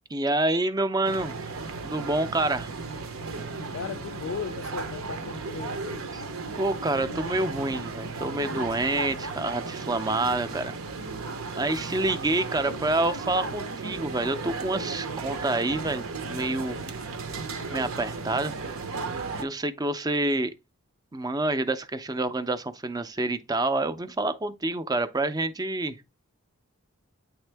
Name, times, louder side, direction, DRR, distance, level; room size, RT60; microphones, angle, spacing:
voice 1, 0.1-1.3 1.8-2.7 6.1-6.2 6.6-10.8 11.6-16.8 17.7-18.5 19.4-20.5 21.1-26.0, right 2 dB, 20° right, 0.5 m, -27 dB
sound 1, 1.0-19.4, right 4 dB, 75° right, 0.7 m, -35 dB
voice 2, 3.7-5.9, left 6 dB, 65° left, 0.4 m, -37 dB
8.9 x 3.5 x 3.4 m
head